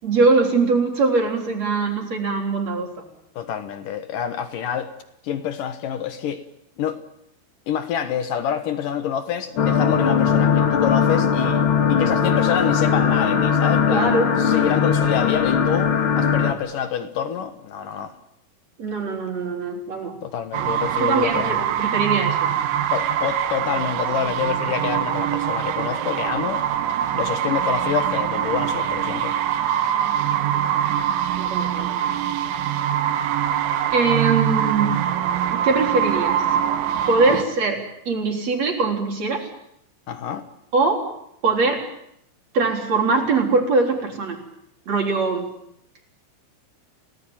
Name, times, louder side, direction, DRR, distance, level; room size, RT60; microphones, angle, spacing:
voice 1, 0.0-2.9 13.9-14.3 18.8-20.2 21.0-22.5 31.4-31.9 33.9-35.0 35.5-36.4 37.1-39.5 40.7-41.1 41.4-41.9 42.5-44.4 44.9-45.5, right 3 dB, 35° right, 4.4 m, -22 dB
voice 2, 3.4-4.9 5.2-6.4 6.8-7.0 7.7-11.6 11.9-18.1 20.2-21.7 22.9-26.6 27.1-29.4 37.3-37.5 40.1-40.5, left 8 dB, 65° left, 2.2 m, -27 dB
sound 1, 9.6-16.5, left 7 dB, 50° left, 1.5 m, -19 dB
sound 2, 20.5-37.4, right 10 dB, 75° right, 3.5 m, -23 dB
29.5 x 18.5 x 9.0 m
omnidirectional pair, 5.5 m